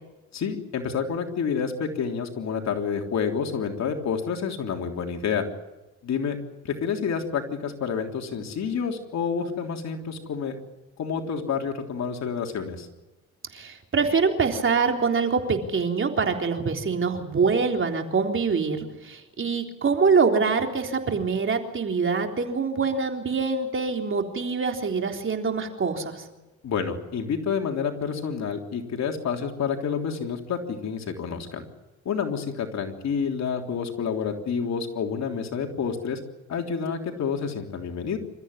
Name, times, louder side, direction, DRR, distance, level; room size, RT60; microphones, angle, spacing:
voice 1, 0.3-5.4 6.0-6.4 6.6-10.6 11.0-12.9 26.6-31.6 32.1-36.2 36.5-38.2, left 6 dB, 60° left, 3 dB, 3.6 m, -29 dB
voice 2, 13.5-26.2, right 5 dB, 40° right, 4 dB, 3.8 m, -24 dB
27.5 x 14.0 x 9.9 m, 1.0 s
cardioid pair, 90°, 30 cm